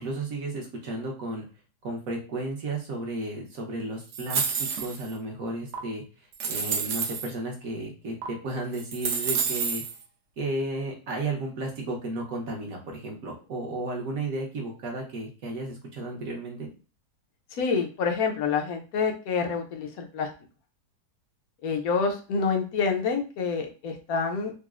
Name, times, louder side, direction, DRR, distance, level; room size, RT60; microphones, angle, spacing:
voice 1, 0.0-1.4 1.8-6.0 6.5-9.8 10.4-16.7, right 2 dB, 60° right, 0 dB, 1.2 m, -33 dB
sound 1, 4.1-5.1 5.7-5.8 6.3-7.3 8.2-8.3 8.7-9.9, right 6 dB, 85° right, 1.3 m, -29 dB
voice 2, 17.5-20.3 21.6-24.5, left 5 dB, 65° left, 4 dB, 1.1 m, -27 dB
4.0 x 2.0 x 2.3 m, 0.35 s
omnidirectional pair, 1.8 m